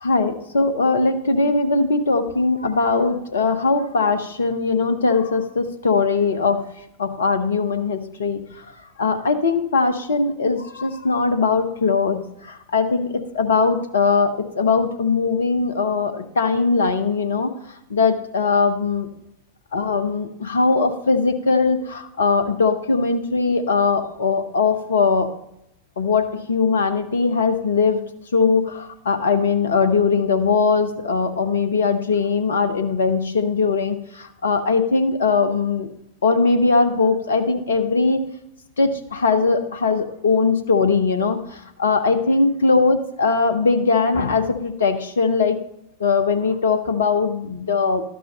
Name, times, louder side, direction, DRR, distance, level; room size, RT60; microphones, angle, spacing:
voice 1, 0.0-6.6 7.0-8.4 9.0-17.5 17.9-19.1 19.7-25.3 26.0-28.0 28.3-35.9 36.2-38.2 38.8-41.4 41.8-45.6 46.0-48.0, left 4 dB, 65° left, 9 dB, 0.9 m, -20 dB
12.5 x 6.1 x 5.2 m, 0.77 s
figure-of-eight pair, 90°, 0 cm